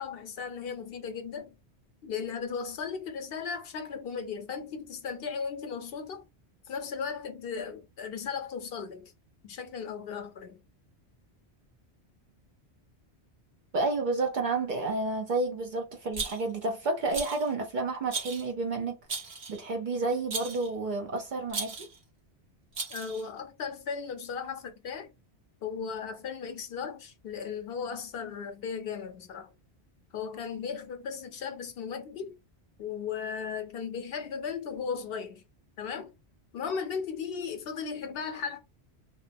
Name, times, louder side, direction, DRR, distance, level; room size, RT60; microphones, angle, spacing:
voice 1, 0.0-1.6 2.0-6.2 6.7-9.0 9.4-10.6 22.9-25.1 25.6-29.5 30.1-32.3 32.8-35.4 35.8-36.1 36.5-38.6, left 6 dB, 65° left, 0.7 m, -36 dB
voice 2, 13.7-19.0 19.5-21.8, right 3 dB, 55° right, 0.6 m, -30 dB
Rattle, 16.1-16.6 17.1-17.5 18.1-18.5 19.1-19.6 20.3-20.7 21.5-22.0 22.7-23.3, right 4 dB, 85° right, 1.3 m, -36 dB
2.7 x 2.0 x 2.5 m
omnidirectional pair, 1.1 m